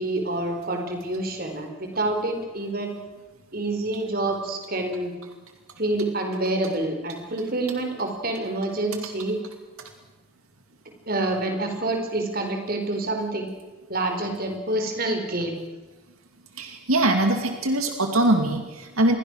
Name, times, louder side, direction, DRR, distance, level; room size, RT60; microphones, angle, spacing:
voice 1, 0.0-3.0 3.5-5.1 5.8-9.4 11.1-13.5 13.9-15.6, right 2 dB, 45° right, 4 dB, 4.7 m, -27 dB
voice 2, 16.6-19.2, right 1 dB, 85° right, 5 dB, 2.4 m, -22 dB
28.0 x 21.5 x 6.5 m, 1.2 s
head